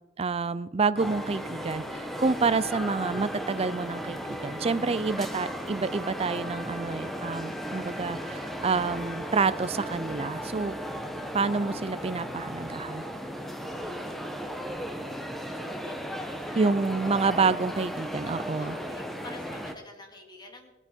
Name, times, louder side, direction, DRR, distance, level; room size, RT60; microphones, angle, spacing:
voice 1, 0.2-10.7 11.3-13.0 16.6-18.8, right 4 dB, 35° right, 15 dB, 0.5 m, -28 dB
sound 1, 1.0-19.8, equal, ahead, 1.0 m, -36 dB
voice 2, 16.3-16.6 18.6-20.7, left 2 dB, 25° left, 3 dB, 2.2 m, -47 dB
19.5 x 9.9 x 4.5 m, 1.1 s
head